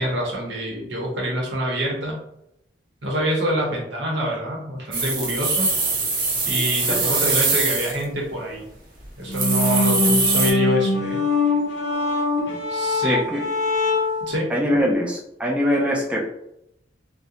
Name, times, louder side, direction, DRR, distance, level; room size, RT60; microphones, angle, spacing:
voice 1, 0.0-2.2 3.0-5.7 6.5-8.6 9.2-11.2 12.7-13.2 14.2-14.5, right 1 dB, 85° right, -2 dB, 0.8 m, -26 dB
sound 1, 4.9-8.0 8.6-8.7 9.0-9.1 9.3-10.5, right 3 dB, 50° right, 0.6 m, -22 dB
sound 2, 9.3-14.3, left 2 dB, 75° left, 0.5 m, -23 dB
voice 2, 13.0-13.4 14.5-16.2, equal, 5° right, -2 dB, 0.3 m, -22 dB
2.4 x 2.1 x 2.8 m, 0.80 s
head